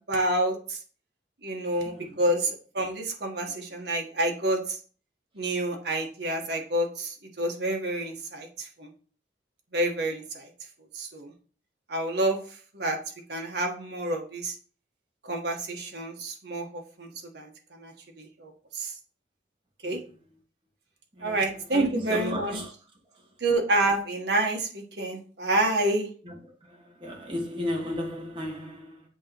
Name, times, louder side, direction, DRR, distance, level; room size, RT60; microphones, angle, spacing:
voice 1, 0.1-0.8 1.4-2.5 2.7-4.8 5.3-8.9 9.7-10.5 10.9-11.3 11.9-12.4 12.7-13.0 13.3-14.5 15.2-18.9 19.8-20.0 21.2-22.6 23.4-26.1, right 1 dB, 65° right, 1.3 m, -28 dB
voice 2, 21.7-22.7 26.2-26.3 26.7-29.0, equal, 30° right, 1.5 m, -34 dB
7.5 x 3.0 x 4.4 m
head